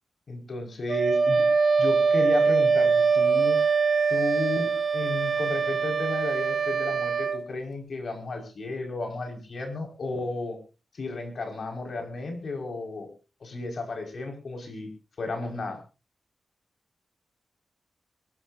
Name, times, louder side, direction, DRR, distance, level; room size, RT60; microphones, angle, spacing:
voice 1, 0.3-1.5 1.8-3.6 4.1-10.6 10.9-13.1 13.4-14.9 15.2-15.8, left 2 dB, 65° left, 3 dB, 5.5 m, -33 dB
Wind instrument woodwind instrument, 0.9-7.4, right 5 dB, 55° right, 1.6 m, -23 dB
24.0 x 14.0 x 2.8 m, 0.33 s
cardioid pair, 75°, 0 cm